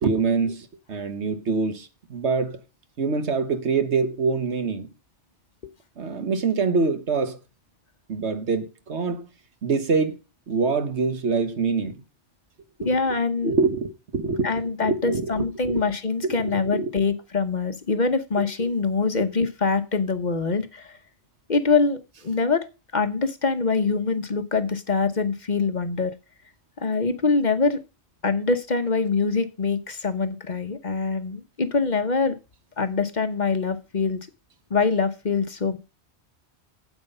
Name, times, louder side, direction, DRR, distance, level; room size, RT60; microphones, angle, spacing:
voice 1, 0.0-2.6 3.0-4.9 6.0-7.4 8.1-9.3 9.6-10.1 10.5-12.0 12.8-12.9 13.4-14.5 14.8-15.8 16.2-16.9 18.4-18.5, right 4 dB, 80° right, 1.6 m, -25 dB
voice 2, 12.8-13.5 14.4-21.0 21.5-22.6 22.9-26.1 26.8-27.8 28.2-32.4 32.8-34.2 34.7-35.8, left 4 dB, 45° left, 1.0 m, -24 dB
9.4 x 8.2 x 5.4 m
omnidirectional pair, 1.2 m